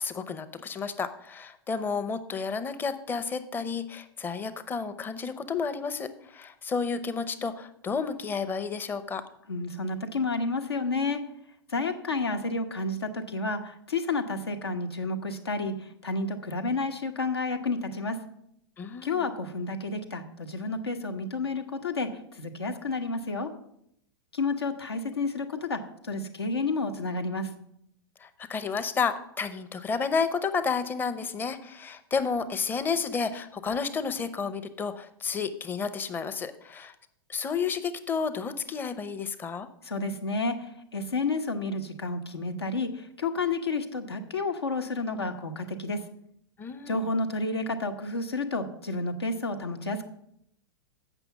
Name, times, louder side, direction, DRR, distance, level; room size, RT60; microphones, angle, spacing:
voice 1, 0.0-9.2 18.8-19.2 28.2-36.9 37.3-39.7 46.6-47.1, left 5 dB, 15° left, 11 dB, 0.7 m, -31 dB
voice 2, 9.5-11.2 11.7-15.7 16.0-18.2 19.0-22.1 22.4-23.5 24.3-25.8 26.1-27.5 39.8-46.0 46.9-50.1, left 3 dB, 75° left, 7 dB, 1.1 m, -30 dB
7.9 x 6.0 x 7.2 m, 0.74 s
figure-of-eight pair, 100°, 13 cm